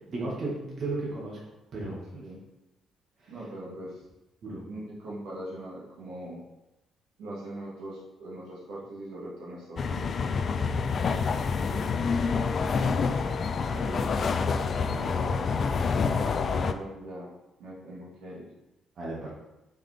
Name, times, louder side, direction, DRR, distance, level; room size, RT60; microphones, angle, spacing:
voice 1, 0.0-1.4 1.7-2.3 3.2-3.3 4.4-4.7 11.6-12.3 13.2-13.4 13.7-14.1 19.0-19.3, right 2 dB, 60° right, -4 dB, 2.0 m, -36 dB
voice 2, 3.3-4.0 4.7-6.4 7.2-10.1 15.0-15.5 16.4-17.3 17.6-18.5, right 1 dB, 85° right, -6 dB, 1.9 m, -40 dB
sound 1, 9.8-16.7, left 5 dB, 50° left, 0.4 m, -27 dB
5.6 x 5.3 x 3.6 m, 0.97 s
cardioid pair, 90°, 0 cm